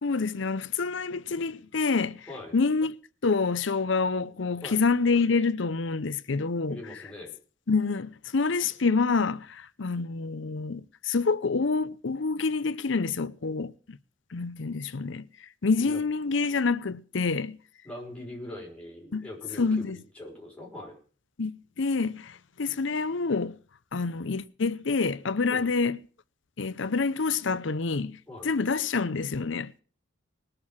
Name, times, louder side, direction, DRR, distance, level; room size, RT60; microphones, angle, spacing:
voice 1, 0.0-2.3 2.5-2.9 3.2-6.8 7.7-14.0 14.3-15.3 15.6-17.6 19.1-19.3 19.6-20.0 21.4-23.5 23.9-26.0 26.6-28.2 28.4-29.7, left 4 dB, 70° left, 0.7 m, -27 dB
voice 2, 2.3-2.6 4.6-4.8 6.7-7.3 15.7-16.0 17.8-19.9 20.1-21.0 25.5-25.7 28.3-28.5, left 1 dB, 5° left, 5.4 m, -41 dB
20.0 x 6.8 x 7.2 m
head